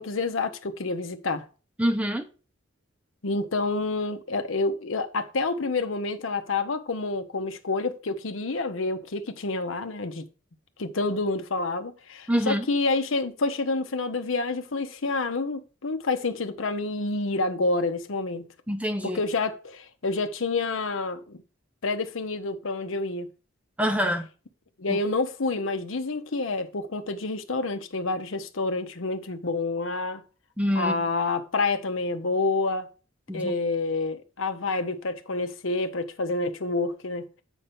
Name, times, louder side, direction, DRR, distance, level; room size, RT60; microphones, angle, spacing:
voice 1, 0.0-1.4 3.2-10.2 10.8-18.5 19.0-21.4 21.8-23.3 24.8-30.2 30.7-32.9 33.3-37.3, left 3 dB, 70° left, 0.9 m, -28 dB
voice 2, 1.8-2.3 12.3-12.7 18.7-19.2 23.8-24.3 24.9-25.0 30.6-31.0 33.3-33.5, equal, 5° right, 0.7 m, -26 dB
8.1 x 4.4 x 5.3 m
head